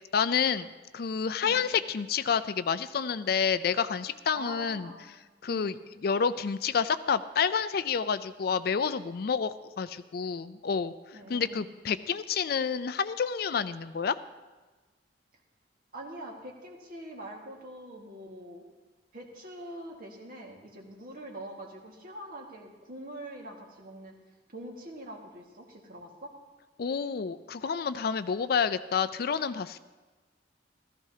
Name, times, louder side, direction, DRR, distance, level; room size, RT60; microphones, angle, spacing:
voice 1, 0.1-4.9 5.4-5.8 6.0-10.9 11.3-14.2 26.8-29.8, left 6 dB, 60° left, 13 dB, 0.4 m, -29 dB
voice 2, 4.3-5.1 5.5-5.8 11.1-11.7 15.9-18.7 19.1-24.1 24.5-26.3, right 1 dB, 55° right, 0 dB, 1.8 m, -44 dB
15.0 x 14.0 x 2.8 m, 1.3 s
head